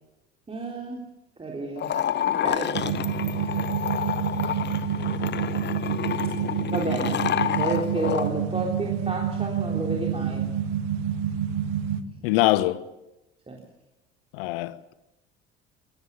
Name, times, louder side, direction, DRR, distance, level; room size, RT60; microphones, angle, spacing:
voice 1, 0.5-1.0 1.4-2.0 2.3-2.7 6.7-10.4 12.1-12.3 13.5-13.6, right 2 dB, 20° right, 3.7 m, -31 dB
sound 1, 1.8-8.3, left 10 dB, 35° left, 1.1 m, -29 dB
sound 2, 2.7-12.0, right 8 dB, 55° right, 1.6 m, -28 dB
voice 2, 12.2-12.8 14.3-14.9, left 17 dB, 60° left, 0.9 m, -23 dB
21.5 x 18.5 x 7.2 m
figure-of-eight pair, 55°, 32 cm